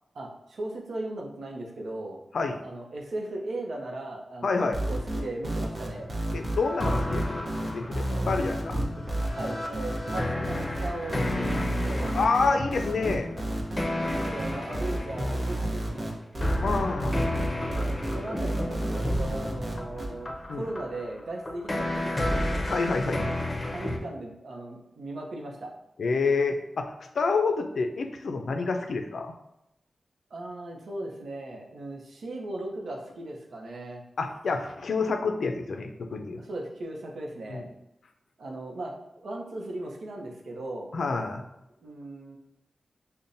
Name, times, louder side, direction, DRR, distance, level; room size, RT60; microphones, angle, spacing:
voice 1, 0.1-2.2 2.6-6.1 8.1-8.3 8.7-8.9 9.2-12.2 14.1-16.2 17.7-22.5 23.0-23.3 23.7-25.7 30.3-34.0 36.4-37.6 38.4-38.9 39.2-40.9 41.8-42.4, right 2 dB, 80° right, 0 dB, 0.6 m, -37 dB
voice 2, 4.4-4.8 6.3-8.8 12.1-13.3 16.6-17.3 20.5-20.7 22.7-23.3 26.0-26.9 27.1-29.3 34.2-36.4 37.5-37.6 40.9-41.4, left 4 dB, 75° left, 5 dB, 0.4 m, -28 dB
Saw Slide, 4.7-20.1, right 1 dB, 45° right, 0.8 m, -31 dB
sound 1, 5.9-15.7 16.4-24.0, left 1 dB, 35° left, 0.6 m, -32 dB
5.4 x 2.1 x 2.6 m, 0.86 s
cardioid pair, 55°, 0 cm